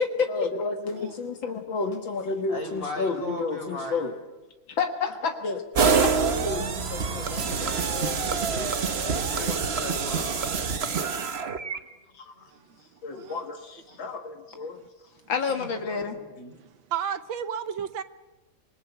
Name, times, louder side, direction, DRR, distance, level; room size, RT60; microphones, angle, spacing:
voice 1, 0.0-4.1 4.7-8.7 9.3-9.6 9.9-10.3 12.1-12.2 13.0-14.8 15.3-16.1, left 4 dB, 70° left, 5 dB, 2.2 m, -31 dB
voice 2, 2.5-4.0 7.3-8.7 9.0-10.5 13.1-13.3 13.9-14.0 15.5-16.5, left 1 dB, 45° left, 2 dB, 5.7 m, -39 dB
sound 1, 5.8-11.8, right 5 dB, 40° right, 1.0 m, -26 dB
voice 3, 10.3-10.9 13.1-13.5 16.6-18.0, right 8 dB, 75° right, 11 dB, 1.8 m, -34 dB
26.0 x 20.5 x 8.1 m, 1.1 s
omnidirectional pair, 2.2 m